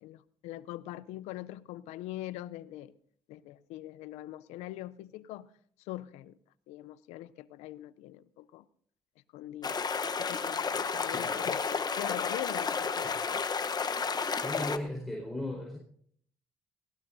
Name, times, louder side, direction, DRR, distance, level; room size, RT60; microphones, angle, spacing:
voice 1, 0.0-2.9 3.3-5.5 5.9-6.4 6.7-8.7 9.3-9.8 10.2-13.4, left 15 dB, 85° left, 17 dB, 0.5 m, -42 dB
sound 1, 9.6-14.8, left 5 dB, 35° left, 0.9 m, -32 dB
voice 2, 11.1-11.4 14.4-15.8, left 1 dB, ahead, -2 dB, 4.3 m, -37 dB
18.5 x 17.0 x 2.7 m, 0.63 s
supercardioid pair, 60°, 11 cm